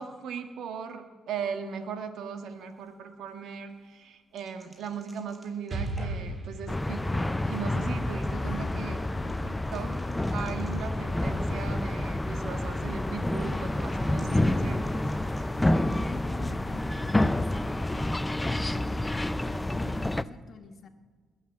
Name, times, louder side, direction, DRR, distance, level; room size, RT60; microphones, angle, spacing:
voice 1, 0.0-9.0 9.4-9.9 10.3-15.0, right 6 dB, 75° right, 6 dB, 1.6 m, -38 dB
sound 1, 2.5-11.8 12.1-12.7 13.0-16.3, right 1 dB, 10° right, 5.0 m, -57 dB
Explosion, 5.7-9.5, right 2 dB, 40° right, 3.3 m, -38 dB
sound 2, 6.7-20.2, left 1 dB, 10° left, 0.5 m, -29 dB
voice 2, 8.3-10.5 15.5-15.6 15.9-19.1 19.4-20.9, left 4 dB, 55° left, 7 dB, 1.6 m, -45 dB
20.5 x 7.3 x 8.1 m, 1.5 s
cardioid pair, 90°, 0 cm